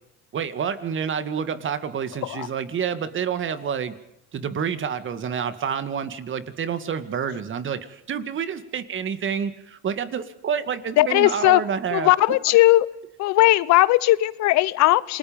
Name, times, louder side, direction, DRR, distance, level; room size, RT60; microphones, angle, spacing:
voice 1, 0.3-3.9 4.3-12.1, right 7 dB, 40° right, 11 dB, 2.2 m, -28 dB
voice 2, 11.0-11.6 11.9-12.9 13.2-15.2, left 17 dB, 65° left, 19 dB, 1.0 m, -18 dB
28.5 x 20.5 x 5.4 m, 0.81 s
cardioid pair, 110°, 30 cm